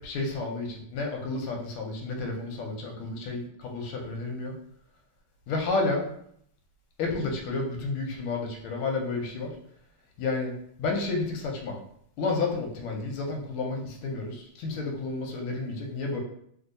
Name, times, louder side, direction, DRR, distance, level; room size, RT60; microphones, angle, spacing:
voice 1, 0.0-4.5 5.5-6.1 7.0-9.6 10.2-11.8 12.2-16.2, left 3 dB, 85° left, 2 dB, 1.5 m, -31 dB
3.3 x 2.6 x 2.6 m, 0.68 s
omnidirectional pair, 2.4 m